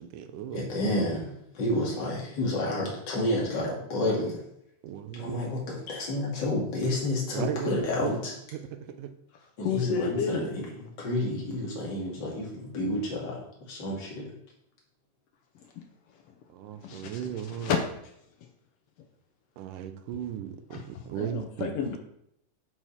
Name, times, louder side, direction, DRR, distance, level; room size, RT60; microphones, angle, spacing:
voice 1, 0.0-0.6 4.8-5.6 7.3-7.7 8.0-8.2 8.5-9.1 16.5-17.8 19.6-21.7, right 9 dB, 80° right, 8 dB, 2.3 m, -36 dB
voice 2, 0.5-4.4 5.1-8.3 9.6-14.3, left 1 dB, 35° left, -4 dB, 2.8 m, -30 dB
voice 3, 9.6-10.5 15.8-15.9 16.8-17.2 17.6-17.8 20.7-20.8 21.2-22.0, left 7 dB, 80° left, 4 dB, 1.3 m, -30 dB
8.9 x 4.6 x 5.8 m, 0.75 s
omnidirectional pair, 3.8 m